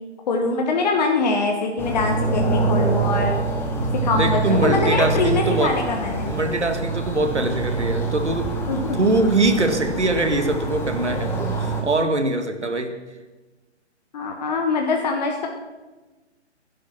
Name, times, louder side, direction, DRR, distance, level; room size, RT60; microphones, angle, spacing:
voice 1, 0.3-3.3 3.9-6.3 8.7-9.0 14.1-15.5, left 3 dB, 35° left, 2 dB, 1.6 m, -23 dB
sound 1, 1.8-11.8, right 3 dB, 5° left, 1.2 m, -25 dB
voice 2, 3.7-5.8 6.3-8.5 8.9-13.0, right 2 dB, 75° right, 7 dB, 2.0 m, -23 dB
16.5 x 11.5 x 5.9 m, 1.2 s
figure-of-eight pair, 135°, 35 cm